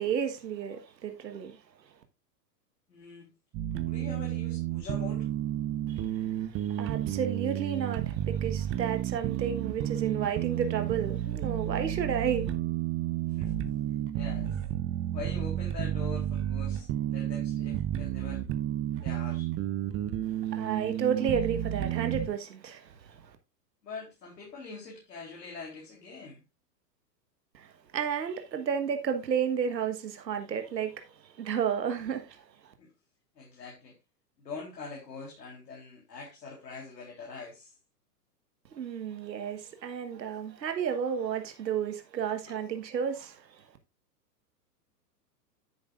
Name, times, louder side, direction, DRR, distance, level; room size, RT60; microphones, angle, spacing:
voice 1, 0.0-1.6 5.9-12.5 20.4-23.2 27.5-32.7 38.7-43.6, right 7 dB, 80° right, 1.5 m, -32 dB
voice 2, 2.9-3.3 3.8-5.3 13.3-13.5 14.1-14.6 15.1-18.4 19.0-19.5 23.8-26.4 32.8-32.9 33.4-34.0 34.4-37.7 42.5-42.6, left 4 dB, 80° left, 3.6 m, -43 dB
sound 1, 3.5-22.3, right 12 dB, 25° right, 0.8 m, -31 dB
10.5 x 8.3 x 2.5 m
hypercardioid pair, 115°, 49 cm